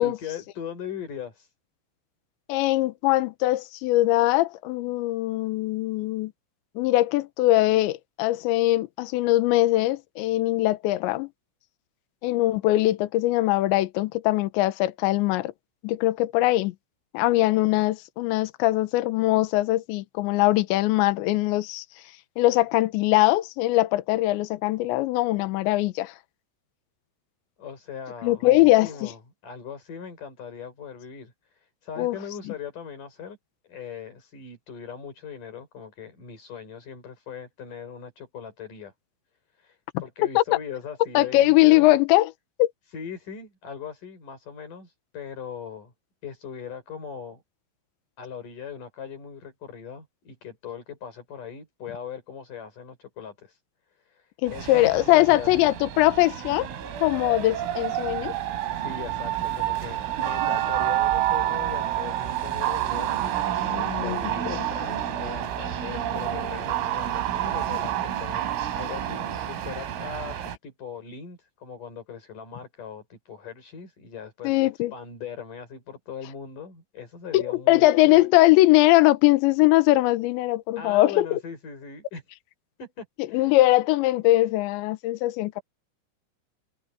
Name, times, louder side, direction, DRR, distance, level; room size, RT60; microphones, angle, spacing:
voice 1, 0.0-1.5 27.6-33.4 33.6-38.9 39.5-41.9 42.9-45.9 46.2-47.4 48.2-53.6 54.0-55.5 58.7-68.5 68.7-78.2 80.8-82.2 82.8-83.6, left 7 dB, 40° left, 6.7 m, -39 dB
voice 2, 2.5-6.3 6.8-11.3 12.2-15.5 15.8-16.7 17.1-21.8 22.4-26.1 28.2-29.1 32.0-32.2 40.4-40.5 41.1-42.3 42.6-42.7 54.4-56.7 57.0-58.3 63.7-64.2 64.5-64.7 74.4-74.9 77.3-81.3 83.3-85.6, left 17 dB, 75° left, 3.0 m, -21 dB
sound 1, 54.5-70.6, right 12 dB, 75° right, 5.6 m, -29 dB
omnidirectional pair, 6.0 m